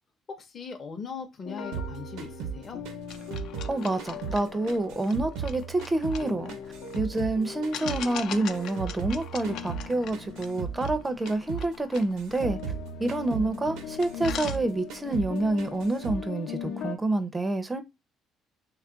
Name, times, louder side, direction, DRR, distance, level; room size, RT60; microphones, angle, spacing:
voice 1, 0.3-2.8, left 5 dB, 40° left, 0.7 m, -39 dB
sound 1, 1.4-5.7 6.2-11.8 12.4-17.0, left 7 dB, 85° left, 0.7 m, -41 dB
sound 2, 1.7-4.4 4.7-7.4 7.6-11.0 11.3-11.7 11.9-14.6 14.9-15.3 15.6-16.2, right 7 dB, 90° right, 0.6 m, -36 dB
sound 3, 3.1-7.0 7.7-13.3 13.7-13.8 14.0-15.1, left 9 dB, 65° left, 0.3 m, -42 dB
voice 2, 3.7-6.5 7.0-12.6 13.0-17.8, right 2 dB, 15° right, 0.4 m, -28 dB
3.0 x 2.3 x 3.7 m
cardioid pair, 115°, 0 cm